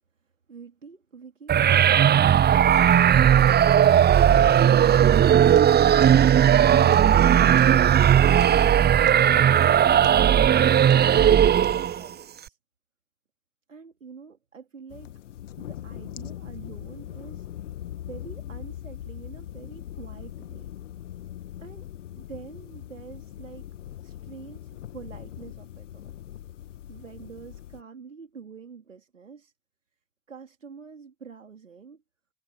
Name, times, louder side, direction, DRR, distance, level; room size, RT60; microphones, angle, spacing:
voice 1, 0.5-4.2 8.2-12.6 13.7-15.1 15.6-17.5 18.1-20.7 21.6-21.9 22.2-23.6 24.0-26.1 26.9-29.5 30.3-32.0, right 6 dB, 85° right, 3.9 m, -46 dB
sound 1, 1.5-12.1, right 9 dB, 25° right, 0.8 m, -17 dB
sound 2, 5.5-6.5 6.7-7.9 8.4-10.3 10.7-11.3 11.6-11.8, right 18 dB, 65° right, 6.1 m, -43 dB
sound 3, 14.9-27.8, left 12 dB, 75° left, 1.8 m, -40 dB
figure-of-eight pair, 60°, 37 cm